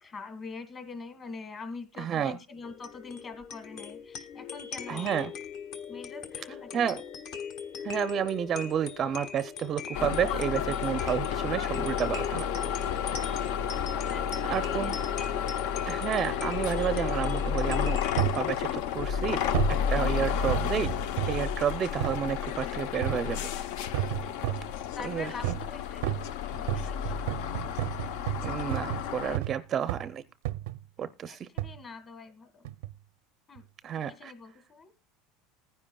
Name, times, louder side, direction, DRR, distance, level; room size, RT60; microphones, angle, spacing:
voice 1, 0.0-5.2 5.9-7.0 13.9-15.3 19.9-20.2 25.0-26.1 26.6-27.3 31.3-32.7 33.5-33.7 34.0-34.9, left 4 dB, 25° left, 9 dB, 1.6 m, -44 dB
voice 2, 2.0-2.3 4.9-5.3 6.7-7.0 7.8-12.5 14.5-14.9 15.8-19.4 19.9-20.9 21.3-23.5 25.0-25.5 28.4-30.2 31.0-31.5 33.8-34.3, right 9 dB, 30° right, 13 dB, 0.5 m, -31 dB
sound 1, 2.6-18.4, left 6 dB, 50° left, 1.3 m, -40 dB
sound 2, 9.9-29.4, left 8 dB, 70° left, 0.7 m, -31 dB
sound 3, 18.2-18.5 19.5-19.8 20.5-21.5 22.0-22.2 23.0-23.4 23.9-24.7 25.4-25.7 26.0-29.6 29.9-30.1 30.5-30.8 31.6-31.8 32.6-33.0 33.6-33.7, right 15 dB, 85° right, 0.5 m, -32 dB
20.0 x 10.0 x 2.3 m, 0.26 s
supercardioid pair, 150°, 0 cm